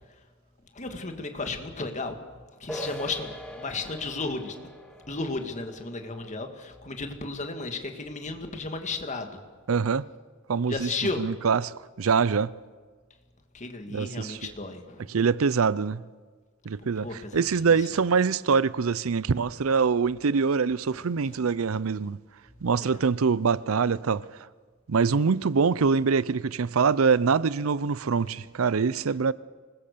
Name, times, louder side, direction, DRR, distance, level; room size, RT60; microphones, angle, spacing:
voice 1, 0.7-2.2 2.6-4.5 5.1-9.4 10.7-11.3 13.5-15.2 16.8-17.9 20.9-21.5 22.8-23.0, left 3 dB, 35° left, 2.0 m, -34 dB
sound 1, 2.7-8.2, equal, 5° left, 2.5 m, -43 dB
voice 2, 9.7-10.1 10.5-10.9 11.2-12.5 13.9-14.4 15.1-16.0 16.7-17.1 17.3-22.2 22.6-24.2 24.9-29.3, right 5 dB, 85° right, 0.6 m, -24 dB
25.0 x 20.5 x 6.8 m
head